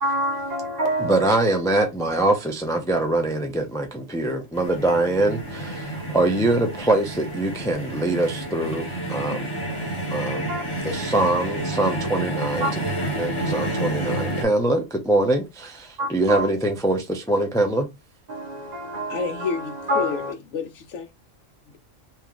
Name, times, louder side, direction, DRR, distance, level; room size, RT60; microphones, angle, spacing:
voice 1, 0.0-1.2 10.5-10.6 12.6-12.7 16.0-16.5 18.3-20.3, equal, 55° right, 0.5 m, -27 dB
voice 2, 1.0-9.5 10.1-10.6 10.8-12.8 13.2-17.9, right 2 dB, 5° left, 0.3 m, -23 dB
sound 1, 4.5-14.4, right 1 dB, 25° left, 1.0 m, -29 dB
voice 3, 19.1-21.1, left 5 dB, 70° left, 1.1 m, -30 dB
3.1 x 2.7 x 3.7 m
omnidirectional pair, 1.3 m